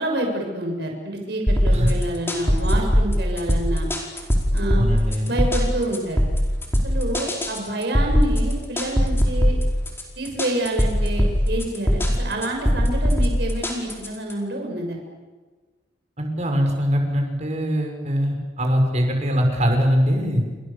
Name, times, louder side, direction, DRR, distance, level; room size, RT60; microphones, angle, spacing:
voice 1, 0.0-3.9 4.5-4.8 5.3-6.2 6.8-9.6 10.2-15.0, right 1 dB, 65° right, 2 dB, 6.9 m, -28 dB
sound 1, 1.5-14.3, equal, 15° left, 4.8 m, -21 dB
voice 2, 4.8-5.4 16.2-20.5, equal, 40° right, 3 dB, 5.8 m, -22 dB
29.5 x 26.5 x 7.0 m, 1.3 s
head